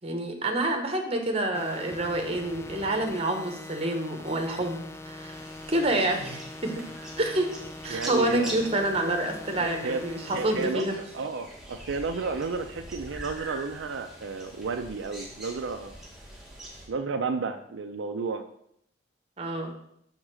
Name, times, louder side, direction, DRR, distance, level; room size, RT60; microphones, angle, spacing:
voice 1, 0.0-5.4 5.7-7.5 7.8-11.0 19.4-19.7, right 1 dB, 30° right, 4 dB, 1.0 m, -28 dB
sound 1, 1.5-10.7, left 2 dB, 15° left, 0.4 m, -42 dB
sound 2, 5.3-16.9, right 1 dB, ahead, 1.2 m, -44 dB
voice 2, 7.9-8.6 9.6-10.0 10.3-15.9 16.9-18.5, right 4 dB, 80° right, 6 dB, 0.5 m, -32 dB
6.4 x 3.6 x 6.1 m, 0.72 s
head